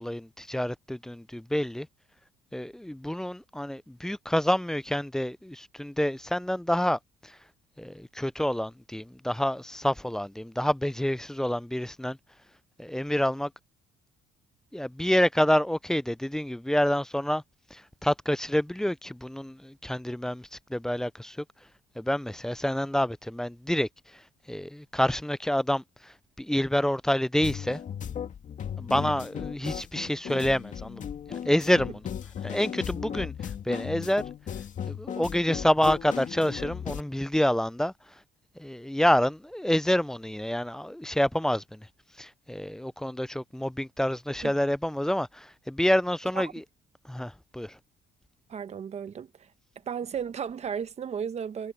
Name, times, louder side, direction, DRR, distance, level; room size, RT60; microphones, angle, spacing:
voice 1, 0.0-1.9 2.5-7.4 7.8-12.2 12.8-13.5 14.7-17.4 17.7-21.4 22.0-27.8 28.8-32.1 32.4-34.2 34.9-38.2 38.6-41.9 42.2-46.6 47.0-47.8, equal, 5° left, 0.3 m, -28 dB
sound 1, 27.4-37.0, left 8 dB, 45° left, 2.4 m, -36 dB
voice 2, 48.5-49.5 49.9-51.7, right 7 dB, 40° right, 1.1 m, -34 dB
cardioid pair, 110°, 17 cm